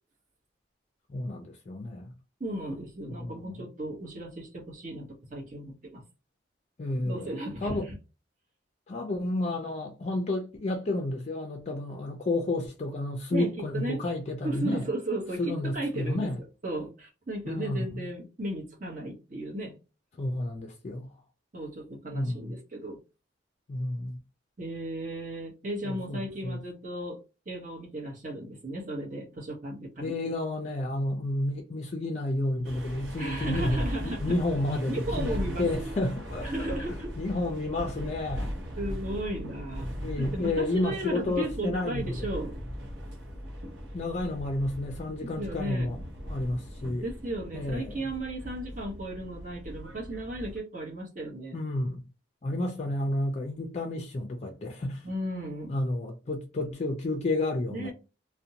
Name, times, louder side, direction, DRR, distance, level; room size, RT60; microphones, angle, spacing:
voice 1, 1.1-2.1 3.1-3.7 6.8-7.3 7.6-7.9 8.9-14.8 15.4-16.4 17.5-18.0 20.2-21.1 22.1-22.5 23.7-24.2 25.8-26.6 30.0-38.5 40.0-42.3 43.9-46.0 46.3-47.0 47.5-48.0 51.5-52.0 52.4-55.0 55.7-57.9, left 2 dB, 35° left, 0.4 m, -31 dB
voice 2, 2.4-6.0 7.0-8.0 13.3-14.0 14.4-16.3 16.6-19.8 21.5-23.0 24.6-27.2 27.5-30.3 33.2-34.3 34.9-36.0 36.4-37.1 38.8-42.6 45.2-45.9 47.0-51.6 55.0-55.8 57.7-57.9, right 1 dB, 45° right, 1.0 m, -35 dB
sound 1, 32.6-50.6, equal, 70° right, 0.7 m, -38 dB
2.5 x 2.1 x 2.7 m
head